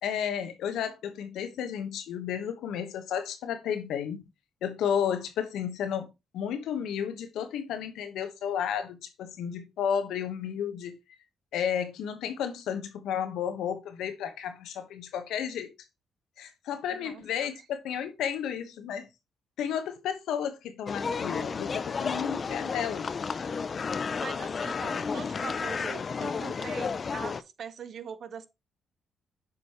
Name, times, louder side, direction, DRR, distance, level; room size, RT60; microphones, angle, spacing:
voice 1, 0.0-4.2 4.6-11.0 11.5-15.7 16.4-19.1 19.6-23.1, left 8 dB, 85° left, 1.1 m, -32 dB
voice 2, 16.9-17.5 24.2-28.5, right 7 dB, 60° right, 0.7 m, -42 dB
sound 1, 20.9-27.4, left 5 dB, 45° left, 0.5 m, -32 dB
8.1 x 5.1 x 3.0 m
cardioid pair, 70°, 0 cm